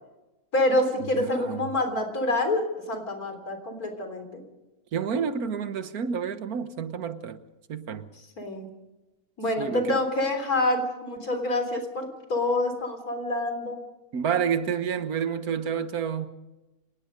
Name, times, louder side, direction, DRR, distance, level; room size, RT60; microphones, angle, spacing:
voice 1, 0.5-4.4 8.4-8.7 9.4-13.8, left 1 dB, 80° left, 4.0 m, -27 dB
voice 2, 1.1-1.7 4.9-7.4 7.7-8.1 9.6-10.0 14.1-16.3, right 7 dB, 80° right, 1.7 m, -29 dB
26.5 x 19.0 x 5.3 m
omnidirectional pair, 1.5 m